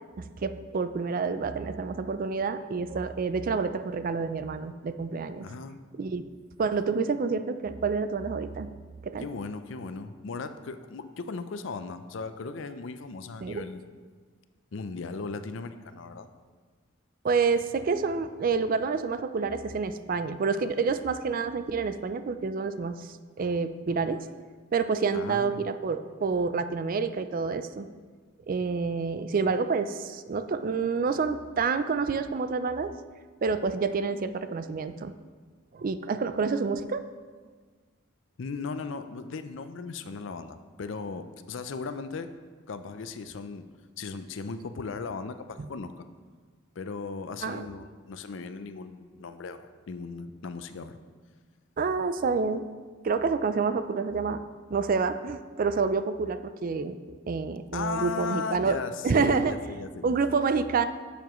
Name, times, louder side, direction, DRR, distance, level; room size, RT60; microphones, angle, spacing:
voice 1, 0.2-5.5 6.0-6.2 6.6-8.7 9.0-9.2 13.4-13.6 17.2-24.3 24.7-27.9 28.5-32.9 33.4-35.1 35.7-37.0 45.6-45.7 47.4-47.7 51.8-52.7 53.0-54.4 54.7-57.0 57.3-59.5 60.0-60.9, right 4 dB, 45° right, 11 dB, 0.4 m, -28 dB
voice 2, 5.4-5.8 9.2-13.8 14.7-16.3 25.1-25.7 38.4-42.3 42.7-43.7 44.0-46.0 46.8-51.0 57.7-60.2, left 4 dB, 65° left, 10 dB, 0.5 m, -37 dB
10.5 x 7.0 x 3.1 m, 1.5 s
head